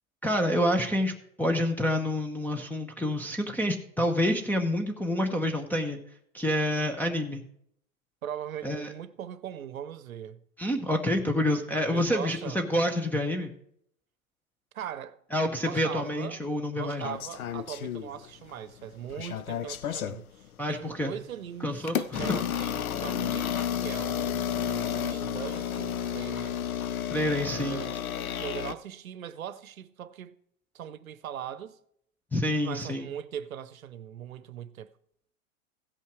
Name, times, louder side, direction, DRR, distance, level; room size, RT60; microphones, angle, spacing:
voice 1, 0.2-6.0 6.3-7.5 8.6-8.9 10.6-13.5 15.3-17.1 20.6-21.1 21.6-22.4 27.1-27.8 32.3-33.1, left 1 dB, 5° left, 0.8 m, -28 dB
voice 2, 8.2-10.4 11.9-12.8 14.7-15.2 15.6-16.4 16.8-26.6 27.7-28.0 28.4-30.3 30.7-31.8 32.6-34.9, right 10 dB, 80° right, 0.8 m, -40 dB
sound 1, 17.0-18.5 18.8-20.2 20.9-21.1 21.9-28.7, left 9 dB, 85° left, 0.6 m, -32 dB
16.0 x 5.6 x 4.6 m
hypercardioid pair, 100°, 42 cm